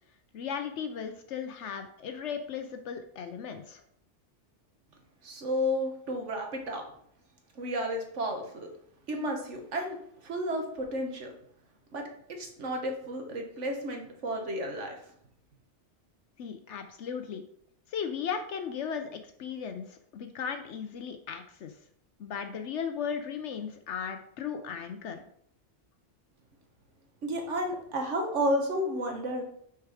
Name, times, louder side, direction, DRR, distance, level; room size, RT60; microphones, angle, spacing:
voice 1, 0.3-3.8 16.4-17.4 17.9-21.7 22.2-25.2, left 7 dB, 75° left, 7 dB, 1.0 m, -36 dB
voice 2, 5.2-6.8 7.5-8.7 9.1-11.3 11.9-15.0 27.2-29.4, equal, 90° right, 3 dB, 1.6 m, -32 dB
6.5 x 4.7 x 4.8 m, 0.69 s
omnidirectional pair, 1.2 m